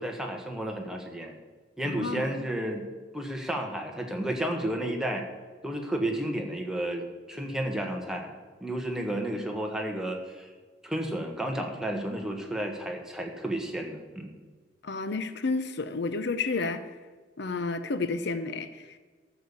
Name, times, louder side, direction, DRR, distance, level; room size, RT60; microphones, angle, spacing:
voice 1, 0.0-1.3 1.8-2.9 3.1-5.2 5.6-8.3 8.6-10.5 10.8-14.3, right 1 dB, 5° right, 1 dB, 1.4 m, -32 dB
voice 2, 1.8-2.5 14.8-16.8 17.4-19.0, left 3 dB, 65° left, 11 dB, 0.7 m, -31 dB
12.5 x 7.0 x 7.1 m, 1.4 s
head